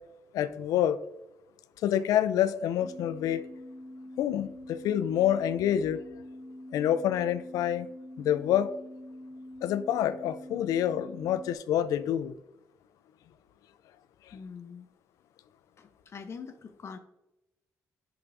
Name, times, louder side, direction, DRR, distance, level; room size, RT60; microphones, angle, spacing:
voice 1, 0.3-1.0 1.8-3.5 4.2-6.0 6.7-7.9 8.2-8.7 9.6-12.3 14.3-14.4, left 10 dB, 90° left, 0.4 m, -27 dB
sound 1, 2.8-11.5, left 1 dB, 15° left, 1.6 m, -45 dB
voice 2, 14.3-14.9 15.8-17.0, left 6 dB, 50° left, 0.7 m, -43 dB
9.8 x 5.9 x 2.6 m
cardioid pair, 85°, 6 cm